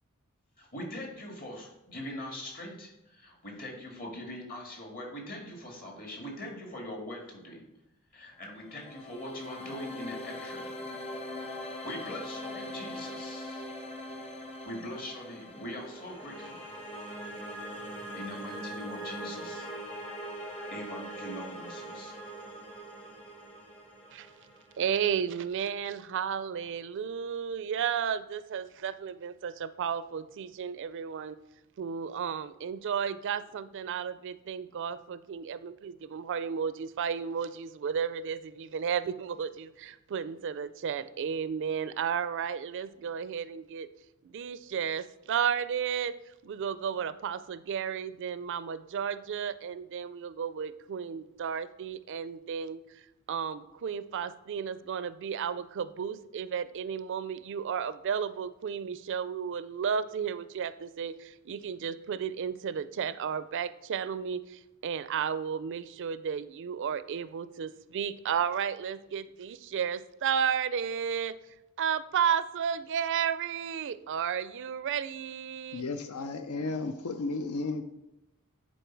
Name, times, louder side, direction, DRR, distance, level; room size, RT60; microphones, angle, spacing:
voice 1, 0.6-7.6 8.1-10.7 11.8-13.7 14.6-16.6 18.1-19.7 20.7-22.2, left 1 dB, 45° left, 1 dB, 2.0 m, -42 dB
sound 1, 8.4-25.5, equal, 30° left, 1.5 m, -42 dB
voice 2, 24.8-31.4 31.8-43.9 44.2-46.1 46.4-52.8 53.3-71.4 71.8-75.8, right 7 dB, 60° right, 15 dB, 0.4 m, -33 dB
voice 3, 75.7-77.8, left 3 dB, 80° left, 9 dB, 0.5 m, -33 dB
10.0 x 4.3 x 4.6 m, 0.93 s
head